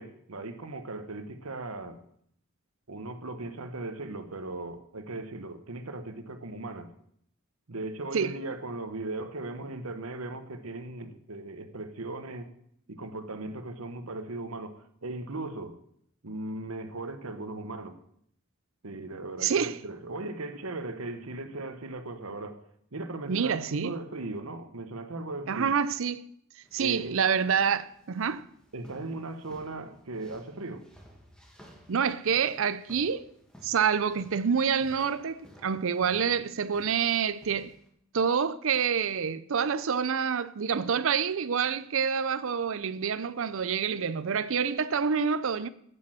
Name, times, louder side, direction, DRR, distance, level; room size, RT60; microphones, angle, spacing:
voice 1, 0.0-2.0 2.9-6.9 7.7-12.5 12.9-15.8 16.2-18.0 18.8-22.6 22.9-25.7 26.8-27.2 28.7-30.8, right 2 dB, 85° right, 1.2 m, -38 dB
voice 2, 19.4-19.8 23.3-24.0 25.5-26.3 26.7-28.4 31.9-33.2 33.6-37.7 38.1-45.7, right 6 dB, 65° right, 0.6 m, -27 dB
sound 1, 26.6-37.9, equal, 5° left, 2.0 m, -55 dB
8.6 x 8.5 x 7.7 m
head